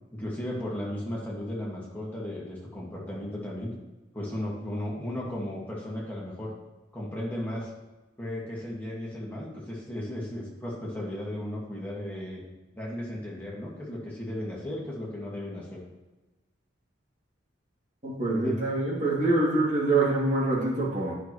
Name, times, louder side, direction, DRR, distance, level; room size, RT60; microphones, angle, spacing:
voice 1, 0.1-3.7 4.1-6.5 6.9-7.7 8.2-12.4 12.7-15.8 18.4-18.6, left 1 dB, 10° left, -5 dB, 1.9 m, -35 dB
voice 2, 18.0-21.1, right 2 dB, 40° right, -6 dB, 2.6 m, -25 dB
10.0 x 6.1 x 3.2 m, 1.1 s
head